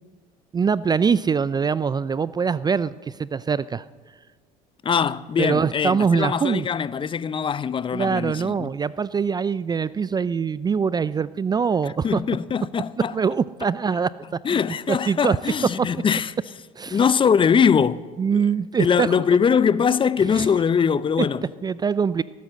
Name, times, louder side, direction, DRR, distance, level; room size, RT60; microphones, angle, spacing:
voice 1, 0.5-3.8 5.4-6.7 7.9-12.2 13.1-14.1 14.5-14.6 14.9-15.4 15.8-15.9 16.8-17.0 18.2-19.2 20.3-20.5 21.2-21.3 21.6-22.2, right 6 dB, 25° right, 0.4 m, -23 dB
voice 2, 4.8-8.7 11.8-13.1 14.4-16.3 16.9-18.0 18.8-21.4, left 7 dB, 30° left, 0.5 m, -22 dB
17.5 x 9.5 x 7.5 m
hypercardioid pair, 75°, 18 cm